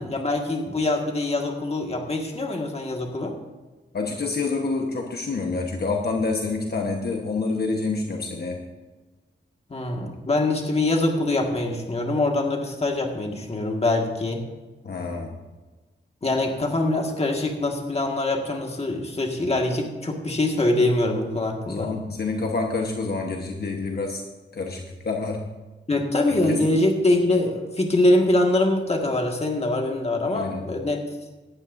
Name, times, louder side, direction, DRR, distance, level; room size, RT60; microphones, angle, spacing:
voice 1, 0.0-3.4 9.7-14.4 16.2-21.9 25.9-31.0, left 2 dB, 35° left, 2 dB, 1.8 m, -24 dB
voice 2, 3.9-8.6 14.8-15.4 21.7-24.2 24.5-25.5 26.3-26.6 30.3-30.7, left 3 dB, 55° left, 1 dB, 1.2 m, -27 dB
18.0 x 13.0 x 2.7 m, 1.2 s
wide cardioid pair, 145°, 19 cm